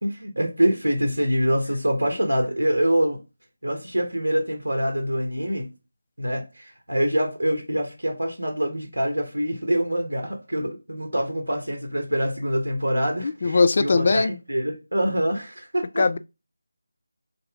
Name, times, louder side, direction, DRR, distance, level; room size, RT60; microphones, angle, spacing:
voice 1, 0.0-3.2 3.6-5.7 6.2-16.0, equal, 90° right, 1.1 m, -25 dB
voice 2, 13.2-14.3 16.0-16.2, left 4 dB, 45° left, 0.3 m, -20 dB
3.6 x 2.9 x 3.5 m
figure-of-eight pair, 165°, 0 cm